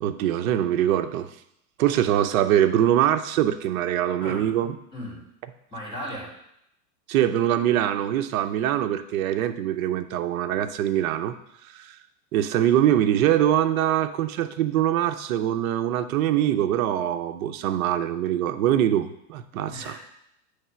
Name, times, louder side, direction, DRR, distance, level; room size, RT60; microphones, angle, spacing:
voice 1, 0.0-1.3 1.8-4.7 7.1-11.3 11.7-11.9 12.3-20.0, right 11 dB, 65° right, 9 dB, 0.7 m, -23 dB
voice 2, 4.2-4.5 4.9-5.2 5.7-6.3 19.7-20.1, equal, 10° left, -7 dB, 3.2 m, -36 dB
8.6 x 3.4 x 5.6 m, 0.78 s
supercardioid pair, 165°, 44 cm